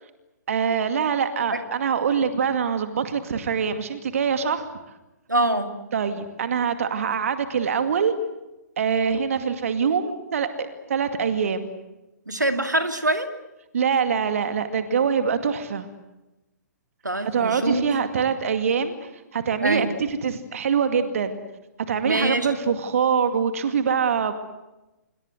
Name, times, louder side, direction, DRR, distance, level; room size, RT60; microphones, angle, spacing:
voice 1, 0.5-4.7 5.9-8.1 8.8-11.7 13.7-15.9 17.3-21.4 21.9-24.3, right 6 dB, 50° right, 9 dB, 2.4 m, -24 dB
voice 2, 5.3-5.7 12.3-13.3 17.0-17.8 19.6-19.9 22.0-22.5, right 1 dB, 85° right, 7 dB, 2.5 m, -24 dB
27.0 x 23.0 x 8.0 m, 0.99 s
figure-of-eight pair, 125°, 9 cm